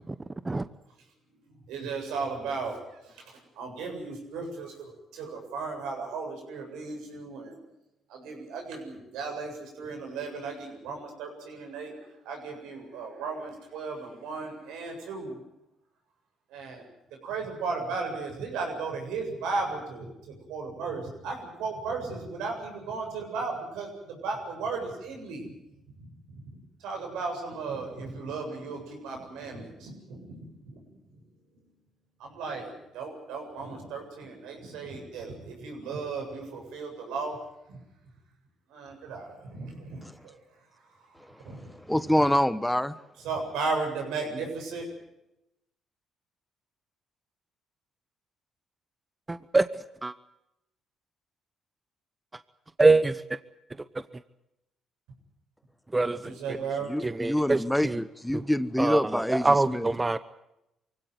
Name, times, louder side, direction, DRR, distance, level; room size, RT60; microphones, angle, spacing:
voice 1, 1.5-7.6 8.1-11.9 12.2-15.4 16.5-16.8 17.2-25.5 26.0-26.5 26.8-30.8 31.1-31.2 32.2-37.4 37.7-37.8 38.7-40.4 41.4-41.6 41.9-42.0 43.2-44.8 56.1-56.9, right 4 dB, 85° right, 2 dB, 7.7 m, -35 dB
voice 2, 41.3-43.0 56.9-59.9, left 1 dB, 5° left, 14 dB, 1.1 m, -26 dB
voice 3, 49.3-49.6 50.0-50.1 52.8-53.1 55.9-56.3 57.0-58.0 58.8-60.2, right 3 dB, 20° right, 14 dB, 0.9 m, -24 dB
24.0 x 16.5 x 9.6 m, 0.86 s
supercardioid pair, 70°, 0 cm